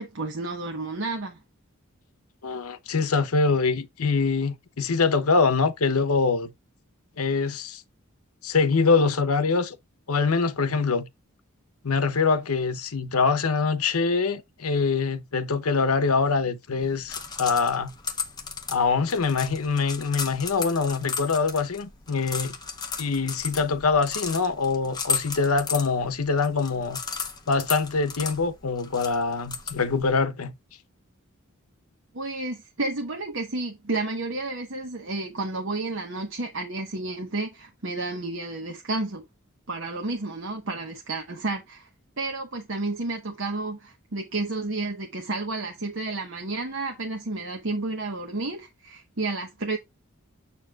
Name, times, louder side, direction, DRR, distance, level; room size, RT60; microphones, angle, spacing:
voice 1, 0.0-1.4 32.1-39.2 39.7-41.9 42.2-49.8, right 2 dB, 60° right, 1.1 m, -31 dB
voice 2, 2.4-6.5 7.2-7.8 8.4-9.8 10.1-11.1 11.8-17.9 18.7-22.5 23.0-27.0 27.5-30.5, left 4 dB, 85° left, 0.8 m, -24 dB
sound 1, 16.8-30.1, left 6 dB, 20° left, 1.0 m, -35 dB
7.1 x 6.9 x 2.4 m
head